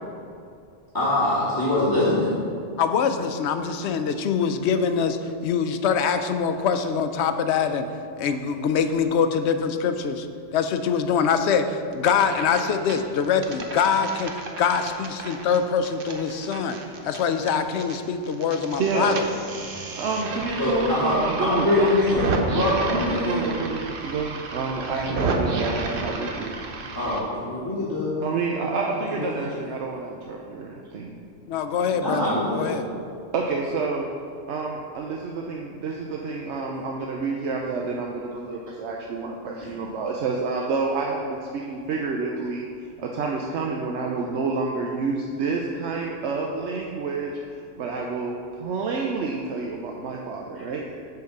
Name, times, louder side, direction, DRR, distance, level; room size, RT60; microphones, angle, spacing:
voice 1, 0.9-2.3 20.6-22.3 22.5-23.4 26.9-28.5 29.1-29.3 31.9-32.8, left 2 dB, 20° left, -11 dB, 2.3 m, -23 dB
voice 2, 2.8-7.9 8.2-10.2 10.5-14.3 14.6-16.8 17.0-19.1 31.5-32.9, left 6 dB, 75° left, 8 dB, 0.9 m, -24 dB
sound 1, 11.9-12.6 12.9-18.0 18.2-27.2, right 3 dB, 55° right, 0.9 m, -31 dB
voice 3, 18.8-19.1 20.0-22.1 23.1-26.6 28.2-31.1 33.3-34.1 34.5-42.6 43.0-50.8, right 4 dB, 80° right, -1 dB, 1.0 m, -29 dB
8.1 x 4.7 x 6.6 m, 2.4 s
omnidirectional pair, 1.2 m